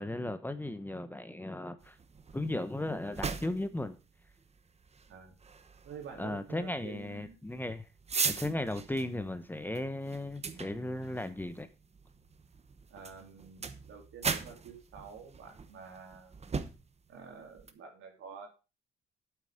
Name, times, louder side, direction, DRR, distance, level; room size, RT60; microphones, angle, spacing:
voice 1, 0.0-1.9 2.3-4.0 6.2-7.8 8.2-11.7, left 1 dB, 10° left, 11 dB, 1.1 m, -36 dB
sound 1, 1.8-17.7, right 5 dB, 35° right, 1.1 m, -40 dB
voice 2, 5.8-7.4 12.9-16.3 17.1-18.5, right 6 dB, 80° right, 2 dB, 3.6 m, -48 dB
8.4 x 8.2 x 5.0 m, 0.31 s
cardioid pair, 90°, 20 cm